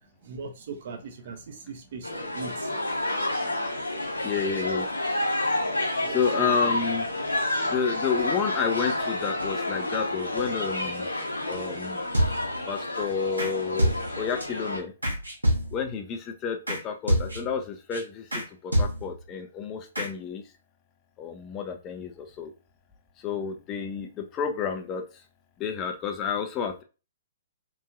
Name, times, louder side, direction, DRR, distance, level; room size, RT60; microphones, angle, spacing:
voice 1, 0.2-2.8 5.8-6.7, right 4 dB, 55° right, 0.6 m, -40 dB
sound 1, 2.0-14.8, left 1 dB, 85° left, 0.8 m, -29 dB
voice 2, 4.2-4.9 6.1-7.1 7.7-11.1 11.5-12.0 12.7-14.9 15.7-20.4 21.2-22.5 23.2-25.0 25.6-26.8, left 6 dB, 25° left, 0.5 m, -30 dB
sound 2, 12.1-12.7 13.4-13.5 13.8-14.4 15.0-16.0 16.7-16.8 17.1-17.6 17.9-18.0 18.3-18.5 18.7-19.3 20.0-20.1, equal, 90° right, 1.0 m, -26 dB
3.0 x 2.6 x 2.3 m
figure-of-eight pair, 120°, 0 cm